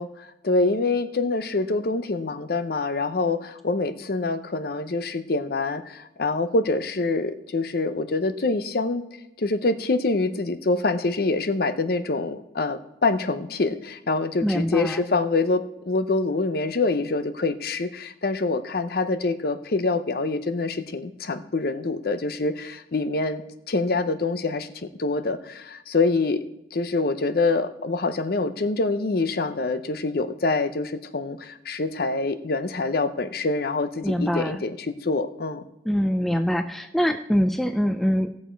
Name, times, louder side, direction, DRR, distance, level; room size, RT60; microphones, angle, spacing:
voice 1, 0.0-9.0 9.4-23.4 23.7-26.4 26.7-35.6, left 3 dB, 50° left, 11 dB, 0.6 m, -25 dB
voice 2, 14.4-15.0 34.0-34.6 35.9-38.4, equal, ahead, 7 dB, 0.3 m, -24 dB
17.5 x 6.5 x 4.5 m, 0.92 s
head